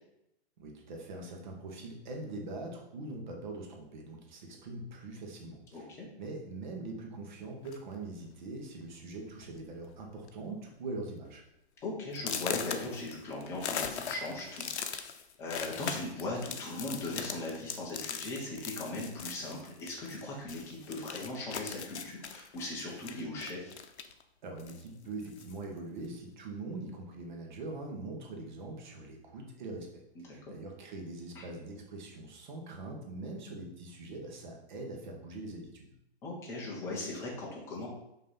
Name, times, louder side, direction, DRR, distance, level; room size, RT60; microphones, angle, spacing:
voice 1, 0.6-11.4 24.4-35.9, right 2 dB, 45° right, 1 dB, 1.4 m, -42 dB
voice 2, 5.7-6.1 11.8-15.1 15.4-23.7 30.2-30.5 31.3-31.4 36.2-37.9, left 2 dB, 10° left, -4 dB, 0.8 m, -39 dB
sound 1, 7.6-8.0 8.8-8.9 9.3-9.5 9.8-10.3 10.7-10.8 11.3-11.4 12.1-20.2 20.5-24.2 24.6-25.6, left 7 dB, 80° left, 0.8 m, -40 dB
5.6 x 3.2 x 5.5 m, 0.83 s
hypercardioid pair, 165°, 33 cm